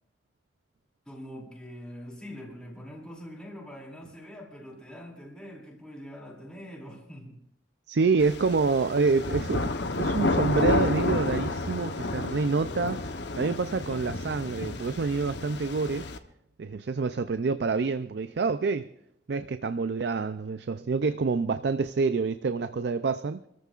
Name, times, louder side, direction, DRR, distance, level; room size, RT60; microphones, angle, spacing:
voice 1, 1.1-7.4, equal, 5° left, 2.7 m, -44 dB
voice 2, 7.9-9.6 10.0-13.1 13.4-16.1 16.6-18.9 19.3-23.4, right 4 dB, 65° right, 0.4 m, -27 dB
sound 1, 8.2-16.2, left 2 dB, 70° left, 0.9 m, -30 dB
28.5 x 14.0 x 2.5 m
head